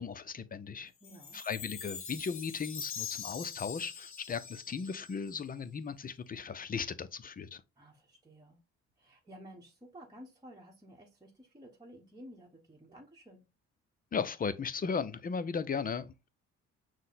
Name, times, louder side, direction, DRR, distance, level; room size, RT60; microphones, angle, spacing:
voice 1, 0.0-0.9 1.3-7.6 14.1-16.3, left 6 dB, 30° left, 0.5 m, -36 dB
Chime, 1.0-5.5, left 7 dB, 45° left, 1.3 m, -44 dB
voice 2, 1.0-1.4 7.8-8.6 9.0-13.4, equal, 15° right, 1.0 m, -53 dB
6.3 x 2.1 x 3.9 m
cardioid pair, 90°, 30 cm